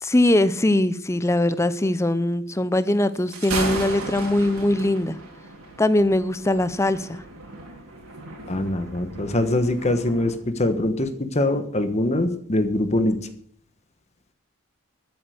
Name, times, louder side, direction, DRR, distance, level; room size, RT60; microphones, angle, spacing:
voice 1, 0.0-5.2 5.8-7.2, left 1 dB, 15° left, 14 dB, 0.6 m, -21 dB
Thunder, 3.1-10.4, right 2 dB, 90° right, 3.9 m, -35 dB
voice 2, 8.5-13.2, left 1 dB, 30° left, 9 dB, 1.2 m, -23 dB
13.5 x 7.8 x 8.0 m, 0.63 s
head